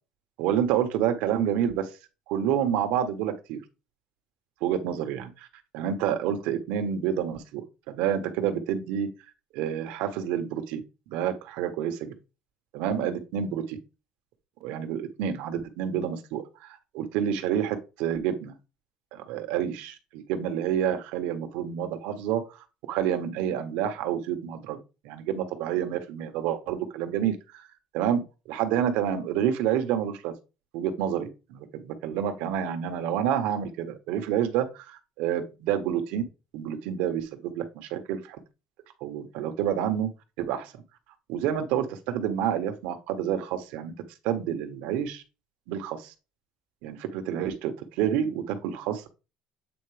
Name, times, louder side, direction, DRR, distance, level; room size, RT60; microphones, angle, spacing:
voice 1, 0.4-1.9 2.3-3.6 4.6-5.5 5.7-9.1 9.5-10.8 11.1-12.1 12.7-13.8 14.6-18.5 19.1-22.4 22.9-24.8 25.0-27.6 27.9-30.3 30.7-36.2 36.5-38.4 39.0-40.1 40.4-40.7 41.3-43.9 44.2-45.2 45.7-46.1 46.8-49.1, right 9 dB, 85° right, 7 dB, 1.4 m, -28 dB
8.4 x 4.6 x 3.4 m, 0.28 s
cardioid pair, 170°, 2 cm